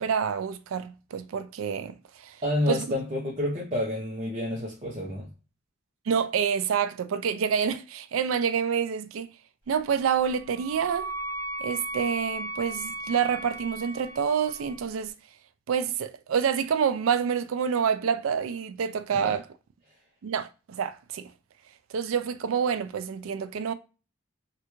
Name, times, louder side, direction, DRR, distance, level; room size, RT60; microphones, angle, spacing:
voice 1, 0.0-2.0 2.2-2.4 2.7-2.9 6.1-9.3 9.7-11.1 11.6-15.1 15.7-19.4 20.2-21.3 21.9-23.7, right 7 dB, 90° right, 0.4 m, -27 dB
voice 2, 2.4-5.3 19.1-19.4, left 1 dB, 30° right, 0.7 m, -29 dB
Wind instrument woodwind instrument, 10.0-14.8, right 2 dB, 25° left, 1.3 m, -36 dB
3.3 x 2.4 x 3.0 m
head